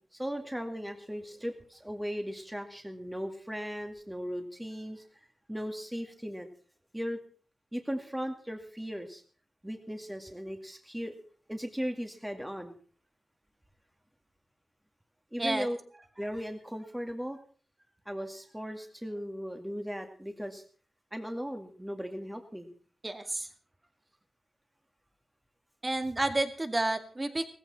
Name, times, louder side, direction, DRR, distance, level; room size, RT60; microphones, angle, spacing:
voice 1, 0.0-6.5 6.9-7.2 7.7-9.2 9.6-11.2 11.5-12.8 15.3-15.8 16.2-17.4 18.1-20.6 21.1-22.7, equal, 5° right, 4 dB, 2.2 m, -37 dB
voice 2, 23.0-23.5 25.8-27.5, right 2 dB, 25° right, 7 dB, 2.1 m, -30 dB
18.0 x 15.5 x 4.3 m, 0.42 s
wide cardioid pair, 90°, 0 cm